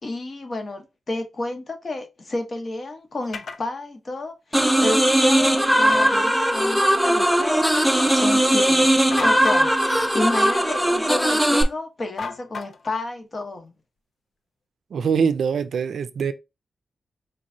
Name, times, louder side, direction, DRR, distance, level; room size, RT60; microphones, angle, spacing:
voice 1, 0.0-13.7, left 2 dB, 40° left, 0.8 m, -31 dB
sound 1, 3.3-3.6 5.8-6.2 9.1-9.7 12.2-13.0, left 4 dB, 55° left, 0.4 m, -32 dB
sound 2, 4.5-11.6, right 1 dB, ahead, 0.5 m, -19 dB
voice 2, 14.9-16.3, right 6 dB, 80° right, 0.4 m, -23 dB
4.5 x 3.0 x 2.6 m
wide cardioid pair, 140°, 0 cm